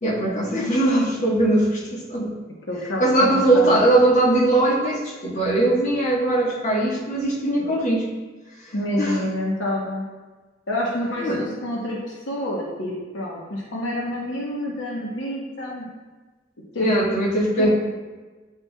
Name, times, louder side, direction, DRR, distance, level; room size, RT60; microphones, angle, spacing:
voice 1, 0.0-2.3 3.0-8.1 9.0-9.2 11.2-11.4 16.8-17.7, right 1 dB, 40° left, -5 dB, 1.4 m, -20 dB
voice 2, 2.7-3.8 8.7-10.1 10.7-15.9 16.7-16.9 17.6-17.7, left 1 dB, 70° left, -4 dB, 1.0 m, -28 dB
9.3 x 4.4 x 2.3 m, 1.3 s
head